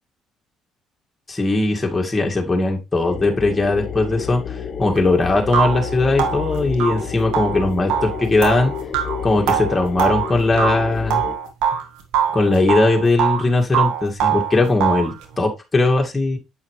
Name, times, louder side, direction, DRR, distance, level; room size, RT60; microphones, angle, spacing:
voice 1, 1.3-8.7 9.2-11.2 12.3-16.4, left 2 dB, 20° left, 1 dB, 2.1 m, -19 dB
sound 1, 3.0-11.4, left 7 dB, 55° left, 1.2 m, -30 dB
sound 2, 5.0-5.1 5.5-11.8 12.1-13.4 13.7-15.1, right 8 dB, 75° right, 1.5 m, -22 dB
8.3 x 5.6 x 3.2 m, 0.26 s
supercardioid pair, 75°, 0 cm